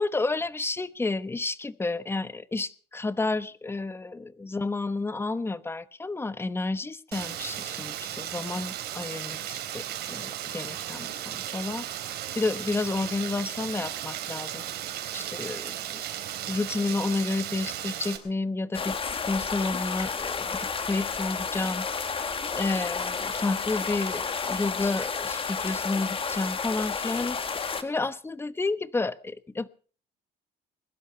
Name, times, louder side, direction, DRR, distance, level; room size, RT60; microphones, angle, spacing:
voice 1, 0.0-11.9 12.4-14.6 15.1-19.0 19.3-21.9 22.5-29.7, left 3 dB, 15° left, 15 dB, 1.0 m, -31 dB
Rain, 7.1-18.2, right 11 dB, 70° right, 3.5 m, -35 dB
sound 1, 18.7-27.8, left 5 dB, 35° left, 2.0 m, -31 dB
21.5 x 12.0 x 5.6 m, 0.42 s
cardioid pair, 110°, 17 cm